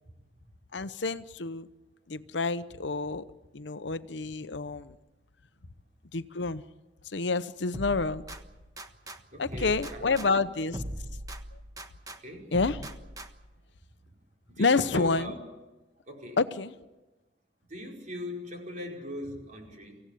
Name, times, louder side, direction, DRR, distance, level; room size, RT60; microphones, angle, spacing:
voice 1, 0.7-1.7 2.1-3.2 3.5-5.0 6.1-6.6 7.0-8.2 9.4-10.8 11.5-11.6 12.5-12.9 14.6-15.3 16.4-16.7, left 4 dB, 80° left, 13 dB, 0.8 m, -28 dB
sound 1, 7.7-9.2 9.5-12.2 12.5-13.6, right 1 dB, 20° right, 1.3 m, -41 dB
voice 2, 9.3-10.4 12.1-12.5 14.5-15.3 16.0-16.4 17.7-20.0, left 1 dB, 45° right, 0 dB, 5.1 m, -40 dB
25.0 x 16.5 x 8.6 m, 1.1 s
head